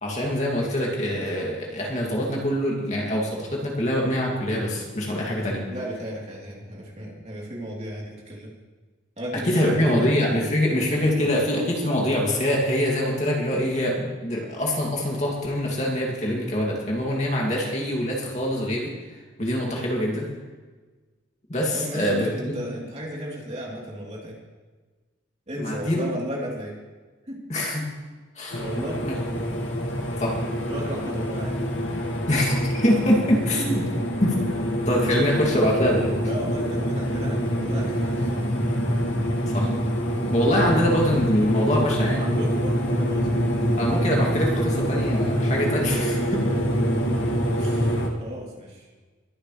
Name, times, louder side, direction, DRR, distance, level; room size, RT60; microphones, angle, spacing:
voice 1, 0.0-5.6 9.4-18.9 19.4-20.3 21.5-22.3 25.6-26.0 27.5-27.9 28.4-28.6 29.0-29.1 30.2-30.3 32.3-33.8 34.2-34.4 34.9-36.2 39.5-39.7 40.3-42.2 43.8-46.4, equal, 35° left, -2 dB, 2.5 m, -24 dB
voice 2, 5.7-8.5 9.2-10.5 10.9-11.3 21.7-24.4 25.5-26.8 27.3-27.4 28.6-29.1 30.4-31.6 33.8-33.9 36.2-38.4 40.4-40.9 42.1-43.3 47.6-48.9, equal, 35° right, -3 dB, 3.5 m, -34 dB
sound 1, 28.5-48.1, equal, 70° left, 2.1 m, -25 dB
22.5 x 11.0 x 3.3 m, 1.3 s
head